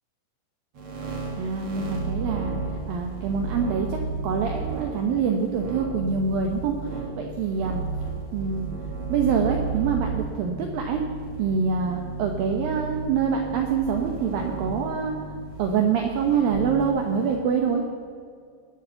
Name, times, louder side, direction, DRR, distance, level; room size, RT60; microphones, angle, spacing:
sound 1, 0.7-17.4, right 3 dB, 55° right, 1.5 m, -33 dB
voice 1, 1.4-2.6 2.9-7.8 8.3-8.7 9.1-11.0 11.4-15.1 15.6-17.8, right 6 dB, 80° right, 3 dB, 2.1 m, -25 dB
20.0 x 7.8 x 7.0 m, 2.1 s
omnidirectional pair, 5.5 m